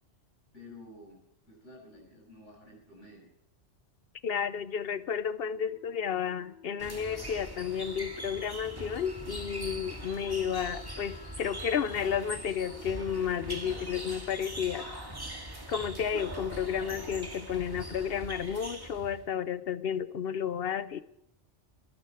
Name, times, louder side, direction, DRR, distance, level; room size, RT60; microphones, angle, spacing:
voice 1, 0.5-3.3, left 2 dB, 85° left, -2 dB, 7.2 m, -51 dB
voice 2, 4.2-14.9 15.7-21.0, left 8 dB, 60° left, 15 dB, 0.9 m, -32 dB
Wind instrument woodwind instrument, 5.3-14.1, left 7 dB, 35° left, 2.9 m, -54 dB
sound 1, 6.8-19.3, right 1 dB, 20° right, 1.9 m, -42 dB
21.5 x 12.5 x 4.7 m, 0.78 s
omnidirectional pair, 1.2 m